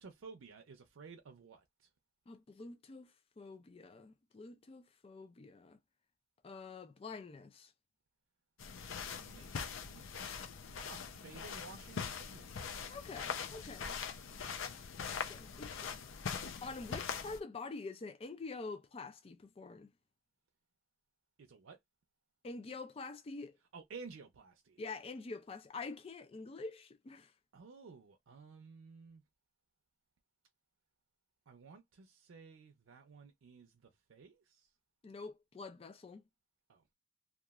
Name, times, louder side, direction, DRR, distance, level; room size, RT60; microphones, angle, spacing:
voice 1, 0.0-1.9 9.2-9.5 9.8-10.1 10.8-12.6 21.4-21.8 23.7-24.8 27.5-29.2 31.5-34.7 36.7-36.8, right 4 dB, 90° right, 0.5 m, -54 dB
voice 2, 2.3-5.8 6.4-7.7 12.9-13.9 15.0-16.0 16.6-19.9 22.4-23.6 24.8-27.3 35.0-36.2, left 3 dB, 30° left, 0.3 m, -47 dB
sound 1, 8.6-17.4, left 6 dB, 85° left, 0.5 m, -42 dB
2.9 x 2.4 x 2.4 m
head